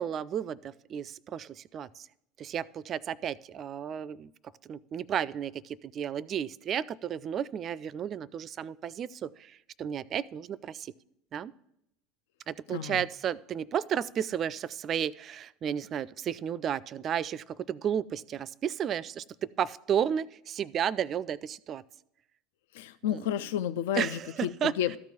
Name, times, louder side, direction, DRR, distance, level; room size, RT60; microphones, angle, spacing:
voice 1, 0.0-2.1 2.4-4.3 4.6-10.9 11.3-11.5 12.5-21.8 23.1-23.3 23.9-24.7, right 9 dB, 35° right, 21 dB, 0.4 m, -33 dB
voice 2, 12.7-13.0 22.7-24.5 24.8-25.0, left 10 dB, 65° left, 13 dB, 0.3 m, -31 dB
13.5 x 4.5 x 7.1 m, 0.79 s
figure-of-eight pair, 75°, 0 cm